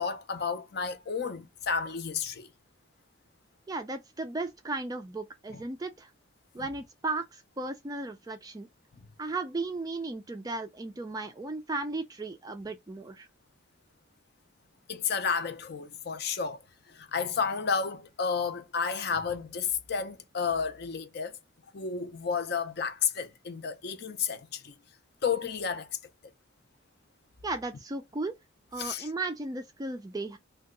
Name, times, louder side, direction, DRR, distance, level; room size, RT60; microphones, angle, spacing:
voice 1, 0.0-2.5 5.5-5.6 6.6-6.7 14.9-21.4 21.7-24.7 25.2-25.9 28.8-29.1, left 6 dB, 55° left, 0.5 m, -32 dB
voice 2, 3.7-6.1 6.5-8.7 9.2-13.3 27.4-28.3 28.7-30.4, right 2 dB, 20° right, 0.3 m, -35 dB
2.7 x 2.3 x 3.6 m
head